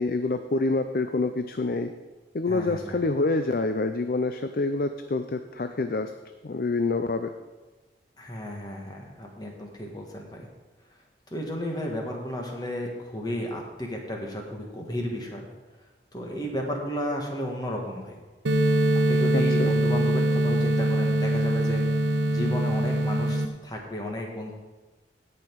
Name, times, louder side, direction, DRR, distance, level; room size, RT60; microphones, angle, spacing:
voice 1, 0.0-1.9 2.3-6.1 6.4-7.3 19.3-19.7, left 3 dB, 55° left, 8 dB, 0.5 m, -27 dB
voice 2, 2.5-3.0 8.2-10.5 11.3-15.5 16.1-18.2 19.1-21.8 22.3-24.5, equal, 20° left, 0 dB, 1.5 m, -33 dB
sound 1, 18.5-23.5, right 1 dB, 90° right, 0.8 m, -23 dB
16.5 x 5.6 x 4.6 m, 1.2 s
head